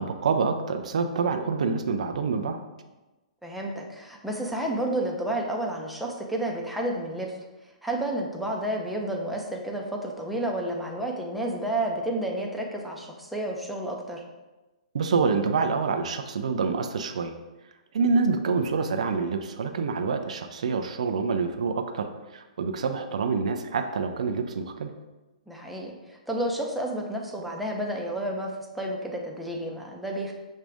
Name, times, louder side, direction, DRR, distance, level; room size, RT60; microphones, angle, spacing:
voice 1, 0.0-2.6 14.9-17.3 17.9-24.9, right 5 dB, 65° right, 6 dB, 0.4 m, -27 dB
voice 2, 3.4-7.3 7.8-14.2 25.5-28.5 28.7-30.3, right 1 dB, ahead, -1 dB, 0.7 m, -31 dB
6.3 x 2.5 x 3.4 m, 1.1 s
hypercardioid pair, 125°, 4 cm